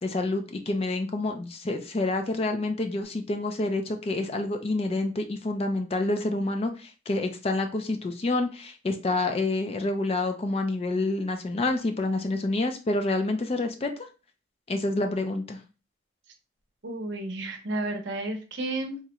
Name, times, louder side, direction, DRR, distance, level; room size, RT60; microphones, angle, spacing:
voice 1, 0.0-13.9 14.7-15.6, left 2 dB, 30° left, 5 dB, 0.4 m, -28 dB
voice 2, 16.8-19.0, right 2 dB, 60° right, 3 dB, 0.7 m, -32 dB
3.6 x 2.1 x 2.9 m, 0.32 s
head